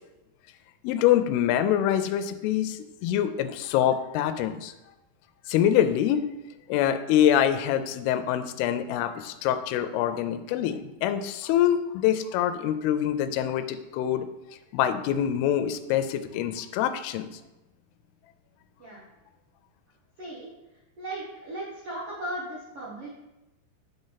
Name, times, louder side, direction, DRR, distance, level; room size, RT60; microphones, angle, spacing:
voice 1, 0.8-4.7 5.5-6.2 6.7-14.3 14.7-17.4, left 10 dB, 85° left, 9 dB, 2.4 m, -25 dB
voice 2, 20.2-20.5 21.0-23.1, right 1 dB, 75° right, -7 dB, 1.3 m, -36 dB
9.0 x 5.2 x 4.0 m, 0.98 s
omnidirectional pair, 4.9 m